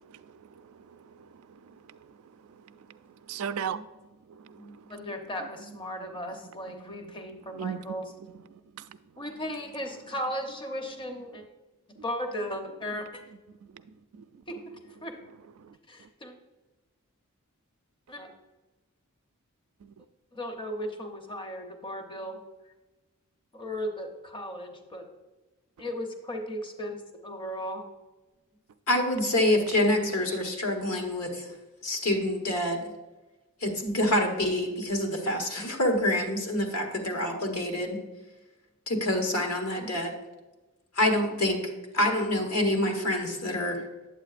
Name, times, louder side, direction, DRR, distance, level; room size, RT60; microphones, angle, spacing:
voice 1, 0.1-2.1 2.5-2.9 3.3-3.9 4.3-4.8 6.7-7.1 7.5-8.0 8.3-8.8 12.0-12.1 13.7-13.8 14.2-14.3 15.6-15.7 19.8-20.0, right 7 dB, 70° right, 0.4 m, -39 dB
voice 2, 4.9-8.1 9.2-11.4 12.0-13.2 14.5-15.2 15.9-16.3 18.1-18.3 20.3-22.4 23.5-25.1 25.8-27.8, equal, 20° left, 0.7 m, -36 dB
voice 3, 28.9-31.5 31.8-32.9 33.6-38.0 38.9-40.1 41.0-43.9, left 1 dB, 75° left, 1.3 m, -27 dB
8.9 x 7.6 x 2.5 m
head